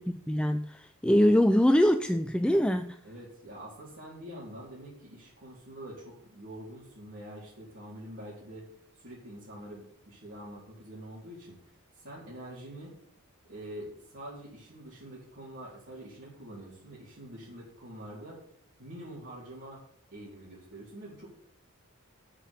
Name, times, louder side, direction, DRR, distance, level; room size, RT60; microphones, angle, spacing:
voice 1, 0.0-3.0, equal, 5° left, 0.5 m, -24 dB
voice 2, 3.0-8.7 9.0-13.0 13.4-18.4 18.8-19.8 20.1-21.3, right 1 dB, 55° right, 4.2 m, -45 dB
9.3 x 7.6 x 8.4 m
head